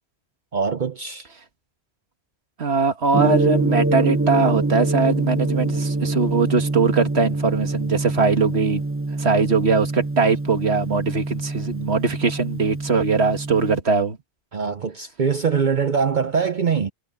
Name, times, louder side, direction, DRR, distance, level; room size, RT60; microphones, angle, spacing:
voice 1, 0.5-1.3 9.4-9.5 14.5-16.9, right 6 dB, 50° right, 0.9 m, -23 dB
voice 2, 2.6-8.8 9.2-14.2, right 4 dB, 85° right, 2.0 m, -21 dB
Gong, 3.1-13.8, right 2 dB, 15° right, 1.0 m, -25 dB
omnidirectional pair, 1.1 m